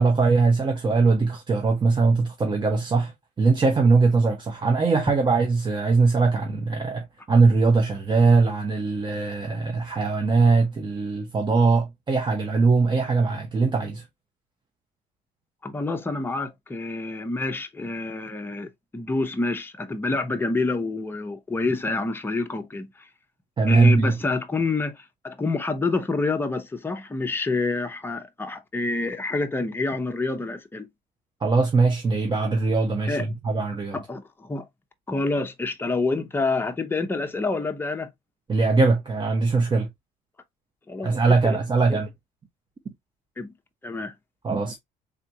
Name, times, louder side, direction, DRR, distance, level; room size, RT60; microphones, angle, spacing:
voice 1, 0.0-3.1 3.4-14.0 23.6-24.1 31.4-34.0 38.5-39.9 41.0-42.1 44.4-44.8, right 4 dB, 25° right, 0.8 m, -21 dB
voice 2, 15.6-22.9 23.7-30.9 33.1-33.3 33.9-34.6 35.1-38.1 40.9-41.6 41.9-42.0 43.4-43.5 43.8-44.1, left 3 dB, 10° left, 0.8 m, -27 dB
3.6 x 3.4 x 2.8 m
cardioid pair, 110°, 17 cm